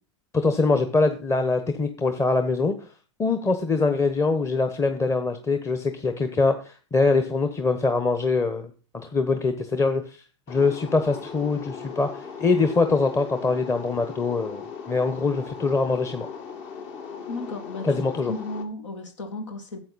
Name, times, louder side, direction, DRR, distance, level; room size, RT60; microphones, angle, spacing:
voice 1, 0.3-2.9 3.2-10.2 10.5-16.3 17.8-18.3, left 3 dB, 20° left, 1.0 m, -23 dB
sound 1, 10.5-18.6, left 6 dB, 50° left, 2.0 m, -38 dB
voice 2, 17.3-19.8, left 2 dB, 80° left, 1.9 m, -34 dB
12.0 x 8.0 x 4.1 m
hypercardioid pair, 100°, 15 cm